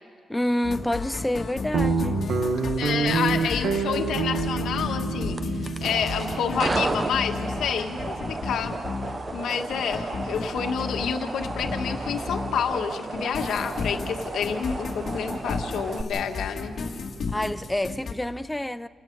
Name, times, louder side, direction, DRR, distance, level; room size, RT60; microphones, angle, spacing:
voice 1, 0.3-2.2 17.3-18.9, left 1 dB, 5° left, 0.5 m, -28 dB
sound 1, 0.6-12.8 13.1-18.1, left 4 dB, 50° left, 2.5 m, -33 dB
Guitar, 1.7-8.4, right 4 dB, 85° right, 1.6 m, -28 dB
voice 2, 2.8-5.5 5.8-8.8 9.3-16.7, left 7 dB, 85° left, 1.6 m, -29 dB
sound 2, 5.3-16.0, right 3 dB, 30° right, 0.8 m, -33 dB
28.5 x 17.5 x 5.4 m
wide cardioid pair, 140°, 0 cm